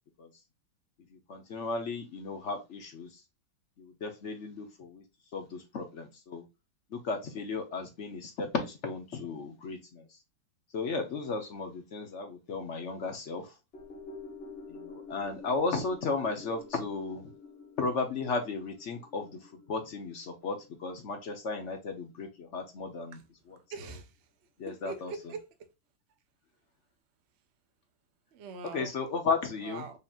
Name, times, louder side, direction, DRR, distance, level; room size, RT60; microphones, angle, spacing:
voice 1, 1.1-3.2 3.8-5.0 5.3-6.5 6.9-10.2 10.7-13.5 14.7-17.3 17.8-23.2 23.5-23.6 24.6-25.1 28.7-30.0, left 4 dB, 55° left, 0.8 m, -35 dB
sound 1, 13.7-22.2 22.5-22.6, left 4 dB, 35° left, 1.3 m, -49 dB
voice 2, 23.5-24.3 24.6-25.5 28.3-28.9 29.6-30.0, right 4 dB, 60° right, 0.7 m, -43 dB
5.2 x 2.8 x 2.3 m
omnidirectional pair, 2.1 m